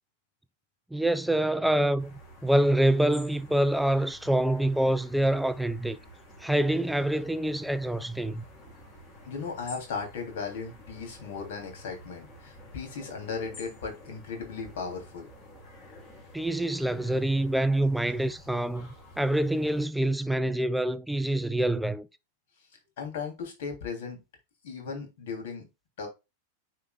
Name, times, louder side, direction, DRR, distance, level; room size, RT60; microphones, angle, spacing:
voice 1, 0.9-6.0 6.4-8.4 16.3-18.9 19.2-22.1, right 1 dB, ahead, 0.4 m, -26 dB
sound 1, 2.0-19.8, equal, 30° left, 4.0 m, -50 dB
voice 2, 9.2-15.3 23.0-24.2 24.6-25.6 26.0-26.1, left 5 dB, 55° left, 3.0 m, -36 dB
9.6 x 4.7 x 2.3 m
figure-of-eight pair, 90°, 0 cm